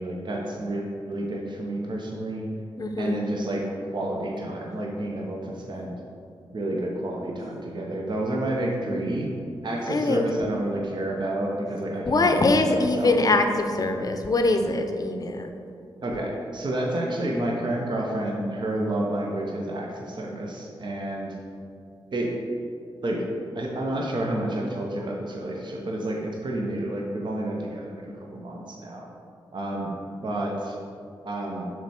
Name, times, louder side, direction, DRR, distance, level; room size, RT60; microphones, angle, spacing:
voice 1, 0.0-2.5 3.0-3.7 3.9-6.0 6.5-9.3 9.6-13.2 16.0-21.3 22.1-22.3 23.0-23.2 23.5-29.1 29.5-29.9 30.2-30.8 31.2-31.7, right 1 dB, 50° right, -1 dB, 0.8 m, -30 dB
voice 2, 2.8-3.2 9.9-10.3 12.1-15.5, left 2 dB, 40° left, 6 dB, 0.6 m, -23 dB
6.7 x 3.3 x 4.2 m, 2.4 s
cardioid pair, 60°, 10 cm